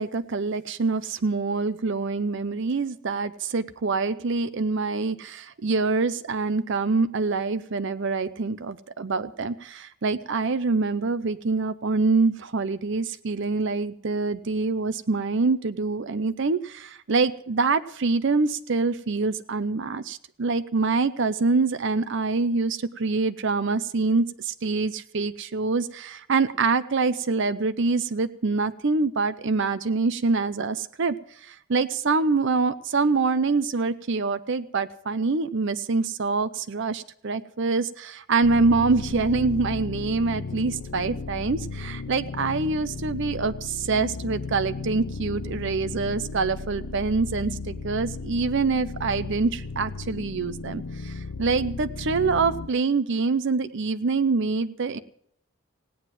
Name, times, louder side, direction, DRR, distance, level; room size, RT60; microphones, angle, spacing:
voice 1, 0.0-31.2 31.4-55.0, right 4 dB, 60° right, 13 dB, 0.6 m, -25 dB
sound 1, 38.4-52.7, left 4 dB, 80° left, 0.7 m, -35 dB
17.0 x 9.4 x 7.5 m, 0.65 s
head